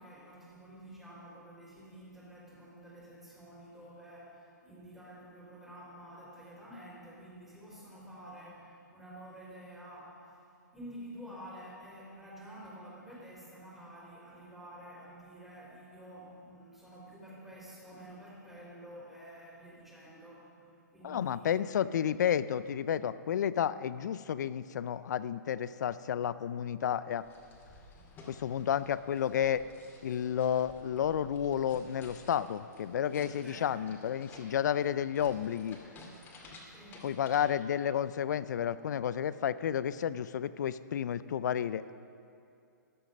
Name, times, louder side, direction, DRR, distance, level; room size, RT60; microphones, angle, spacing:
voice 1, 0.0-10.4 10.7-21.6 27.9-28.4 33.4-34.0 36.7-37.1, equal, 5° right, -5 dB, 3.5 m, -50 dB
voice 2, 21.0-27.2 28.3-29.6 30.0-35.8 37.0-41.9, left 9 dB, 65° left, 16 dB, 0.5 m, -31 dB
sound 1, 27.2-37.5, left 2 dB, 20° left, 2.3 m, -54 dB
14.0 x 12.0 x 5.3 m, 2.5 s
hypercardioid pair, 135°, 10 cm